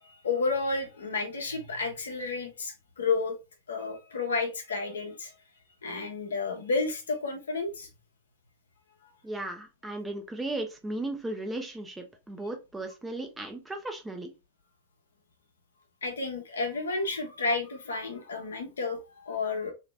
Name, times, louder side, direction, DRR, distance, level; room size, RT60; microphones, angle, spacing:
voice 1, 0.2-3.4 3.7-5.3 5.8-7.9 16.0-19.7, left 4 dB, 70° left, 0.9 m, -31 dB
voice 2, 9.2-14.3, right 2 dB, 10° right, 0.7 m, -36 dB
2.9 x 2.8 x 3.3 m
figure-of-eight pair, 90°, 0 cm